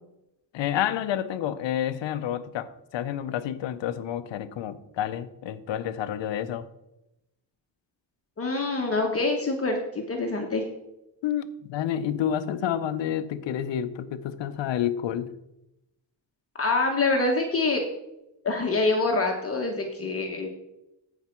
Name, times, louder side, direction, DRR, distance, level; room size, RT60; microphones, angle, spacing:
voice 1, 0.5-6.7 11.2-15.3, left 10 dB, 75° left, 12 dB, 0.8 m, -29 dB
voice 2, 8.4-10.7 16.6-17.8 18.4-20.5, left 3 dB, 30° left, 1 dB, 1.2 m, -25 dB
14.0 x 5.0 x 4.5 m, 0.90 s
cardioid pair, 105°, 44 cm